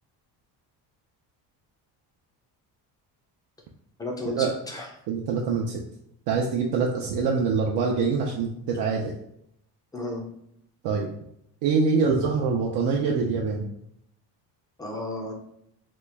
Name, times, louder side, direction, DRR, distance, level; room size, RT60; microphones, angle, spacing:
voice 1, 4.0-4.9 9.9-10.2 14.8-15.3, left 2 dB, 10° left, 0 dB, 0.4 m, -33 dB
voice 2, 5.1-5.8 6.3-9.1 10.8-11.1 11.6-13.7, right 5 dB, 75° right, -1 dB, 0.5 m, -24 dB
3.0 x 2.3 x 3.3 m, 0.75 s
cardioid pair, 155°, 41 cm